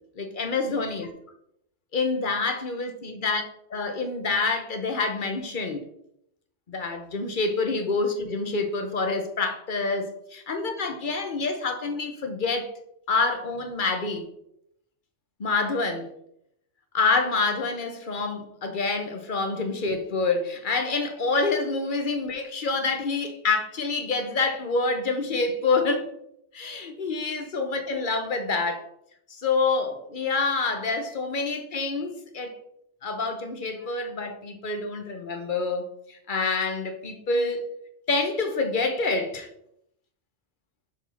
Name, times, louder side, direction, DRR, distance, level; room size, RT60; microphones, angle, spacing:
voice 1, 0.2-1.2 1.9-3.4 3.7-5.8 6.7-12.7 13.1-14.3 15.4-16.2 16.9-26.1 26.5-28.8 29.3-32.6 33.0-37.7 38.1-39.5, left 3 dB, 45° left, 5 dB, 1.1 m, -27 dB
6.2 x 4.4 x 5.6 m, 0.77 s
omnidirectional pair, 1.2 m